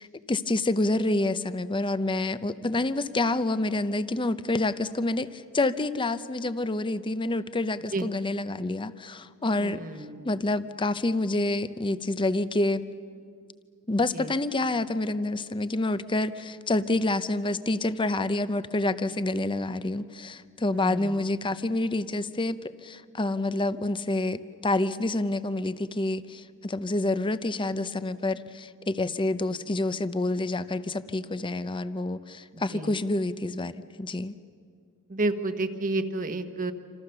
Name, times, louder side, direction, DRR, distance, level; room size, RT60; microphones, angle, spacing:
voice 1, 0.0-9.8 10.2-12.8 13.9-22.6 22.8-34.4, left 2 dB, 20° left, 13 dB, 0.7 m, -28 dB
voice 2, 9.6-10.2 14.1-14.3 20.7-21.2 32.5-32.9 35.1-36.7, right 2 dB, 40° right, 8 dB, 1.2 m, -31 dB
28.0 x 27.0 x 6.9 m, 2.3 s
head